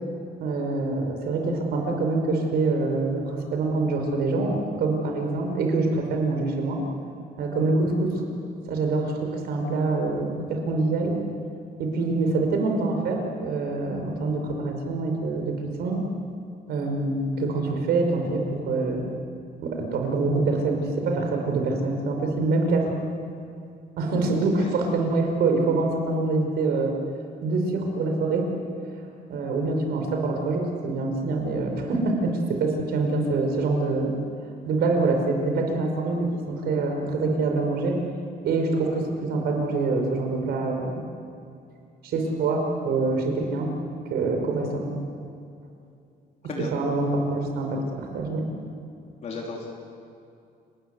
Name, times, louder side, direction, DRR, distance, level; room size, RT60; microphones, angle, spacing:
voice 1, 0.4-6.8 7.4-8.2 8.7-11.1 11.8-16.0 16.7-19.1 19.6-22.9 24.0-26.9 27.4-28.5 29.3-34.1 34.7-38.0 38.4-41.0 42.0-43.7 44.1-45.0 46.7-48.5, right 3 dB, 70° right, 3 dB, 5.3 m, -25 dB
voice 2, 49.2-49.7, left 3 dB, 40° left, -2 dB, 3.4 m, -34 dB
29.5 x 20.0 x 8.2 m, 2.5 s
cardioid pair, 180°, 17 cm